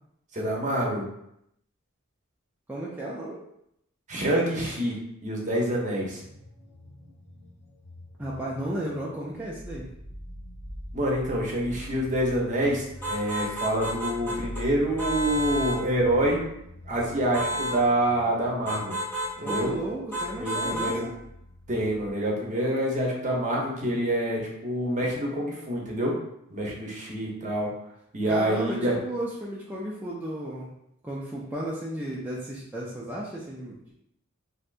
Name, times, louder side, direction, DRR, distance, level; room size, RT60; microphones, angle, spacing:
voice 1, 0.3-1.1 4.1-5.0 5.2-6.2 10.9-16.4 16.9-19.0 19.4-19.7 20.4-21.0 21.7-26.1 26.5-27.7 28.1-28.9, right 1 dB, 35° right, -2 dB, 0.8 m, -26 dB
voice 2, 2.7-3.4 8.2-9.9 19.4-21.1 28.2-30.7 31.0-33.9, right 1 dB, 10° right, -6 dB, 0.4 m, -34 dB
sound 1, 5.6-22.1, equal, 75° left, 1.1 m, -44 dB
sound 2, 13.0-14.6 15.0-15.8 17.3-17.8 18.7-19.7 20.1-21.0, right 1 dB, 10° left, 1.1 m, -31 dB
3.3 x 2.7 x 2.5 m, 0.78 s
head